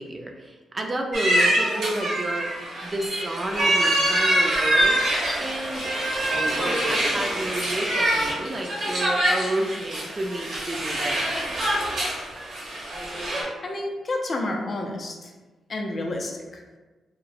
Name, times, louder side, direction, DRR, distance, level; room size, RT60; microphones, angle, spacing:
voice 1, 0.0-5.9 6.5-11.4, right 1 dB, 30° right, 2 dB, 0.3 m, -31 dB
sound 1, 1.1-13.4, right 1 dB, 75° right, 0.8 m, -25 dB
voice 2, 13.6-15.3 15.7-16.6, left 2 dB, 45° left, 1 dB, 0.4 m, -30 dB
2.9 x 2.0 x 2.5 m, 1.2 s
cardioid pair, 90°, 0 cm